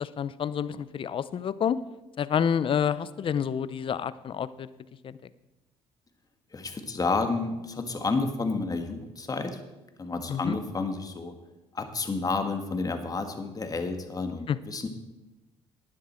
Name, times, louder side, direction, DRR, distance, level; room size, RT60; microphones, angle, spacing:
voice 1, 0.0-1.8 2.2-4.7 5.0-5.3 10.3-10.6 14.5-14.6, left 8 dB, 45° left, 16 dB, 0.6 m, -28 dB
voice 2, 6.5-9.6 10.0-11.3 11.7-14.9, left 3 dB, 30° left, 6 dB, 1.6 m, -30 dB
11.5 x 9.9 x 4.4 m, 1.0 s
supercardioid pair, 70°, 12 cm